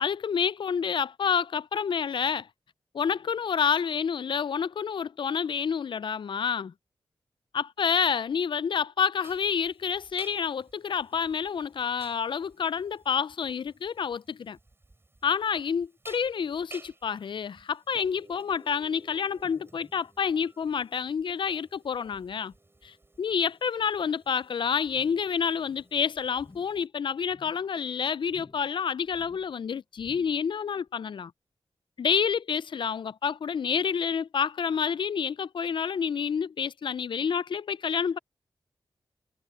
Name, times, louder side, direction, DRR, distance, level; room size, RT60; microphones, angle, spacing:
voice 1, 0.0-2.5 2.9-6.7 7.5-14.6 15.2-22.5 22.8-31.3 32.0-38.2, left 7 dB, 60° left, 0.4 m, -28 dB
sound 1, 9.2-26.9, right 2 dB, 25° right, 6.8 m, -55 dB
sound 2, 24.9-25.4 25.6-26.0 26.4-26.9 27.2-27.7 28.3-28.8 29.1-29.6 30.0-30.5 30.9-31.0, left 3 dB, 35° left, 4.5 m, -55 dB
wide cardioid pair, 100°, 10 cm